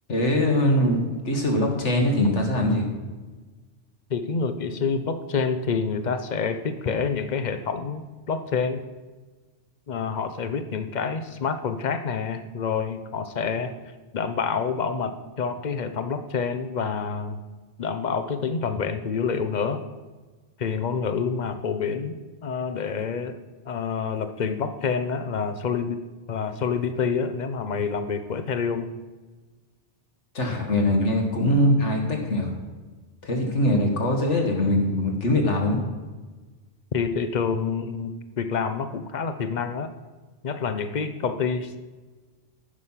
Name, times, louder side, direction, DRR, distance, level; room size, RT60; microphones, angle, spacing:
voice 1, 0.1-2.9 30.3-32.5 33.2-35.8, left 1 dB, 85° left, 2 dB, 2.1 m, -22 dB
voice 2, 4.1-8.0 8.3-8.8 9.9-13.7 14.1-17.4 17.8-19.8 20.6-22.1 22.4-23.4 23.7-26.0 26.3-28.9 36.9-39.9 40.4-41.8, left 5 dB, 45° left, 9 dB, 0.8 m, -27 dB
15.0 x 6.3 x 5.7 m, 1.3 s
omnidirectional pair, 1.2 m